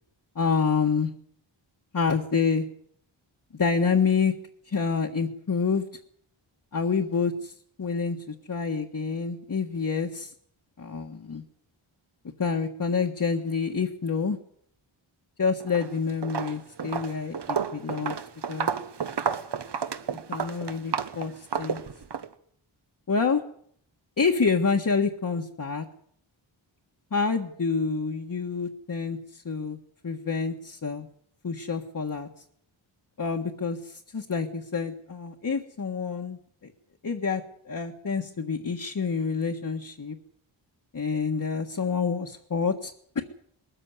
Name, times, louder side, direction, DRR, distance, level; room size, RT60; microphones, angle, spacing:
voice 1, 0.3-1.1 1.9-2.6 3.6-4.3 4.7-5.8 6.7-7.5 7.8-10.3 10.8-11.4 12.4-14.4 15.4-18.2 18.5-18.7 20.1-21.3 21.6-21.8 23.1-23.4 24.2-25.9 27.1-29.8 30.0-31.1 31.4-32.3 33.2-36.4 37.0-40.2 40.9-43.2, left 5 dB, 40° left, 1 dB, 1.6 m, -27 dB
Walk footsteps, 15.6-15.9 16.2-22.3, right 7 dB, 55° right, 1.4 m, -31 dB
21.0 x 14.0 x 9.6 m, 0.63 s
wide cardioid pair, 130°, 48 cm